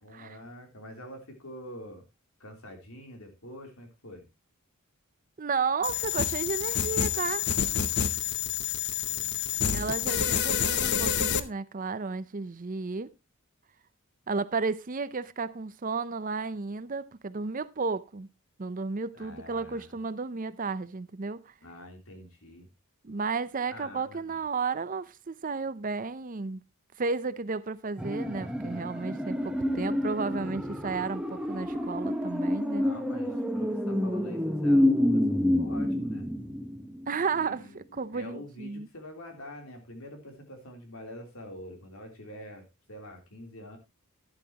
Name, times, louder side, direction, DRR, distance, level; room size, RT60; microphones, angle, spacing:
voice 1, 0.0-2.0 2.4-4.3 9.1-9.8 19.1-19.9 21.6-22.7 23.7-24.4 32.8-36.3 37.3-43.8, left 1 dB, 75° left, 3.3 m, -46 dB
voice 2, 5.4-7.5 9.7-13.1 14.3-18.3 18.6-21.5 23.0-26.6 27.0-32.9 37.1-38.9, right 4 dB, 40° right, 0.6 m, -33 dB
sound 1, 5.8-11.4, left 8 dB, 50° left, 0.8 m, -28 dB
sound 2, 28.0-37.1 37.4-37.5, left 1 dB, 5° right, 1.0 m, -28 dB
11.5 x 11.5 x 2.9 m
head